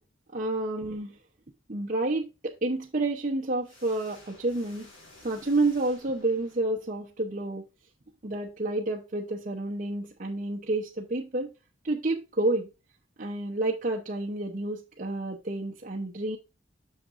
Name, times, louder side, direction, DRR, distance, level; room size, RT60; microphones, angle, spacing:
voice 1, 0.3-1.2 1.7-4.9 5.2-7.6 8.2-11.5 11.8-12.7 13.2-16.4, right 2 dB, 40° right, 0.9 m, -29 dB
sound 1, 3.6-7.0, left 2 dB, 80° left, 4.4 m, -54 dB
9.1 x 6.6 x 2.5 m
head